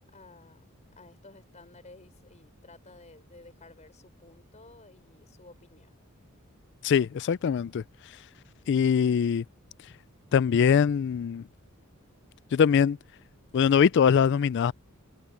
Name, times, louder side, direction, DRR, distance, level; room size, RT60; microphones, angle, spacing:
voice 1, 0.1-0.6 1.0-5.9, left 3 dB, 35° left, 4.6 m, -53 dB
voice 2, 6.8-7.8 8.7-9.4 10.3-11.4 12.5-13.0 13.5-14.7, left 7 dB, 55° left, 0.3 m, -22 dB
head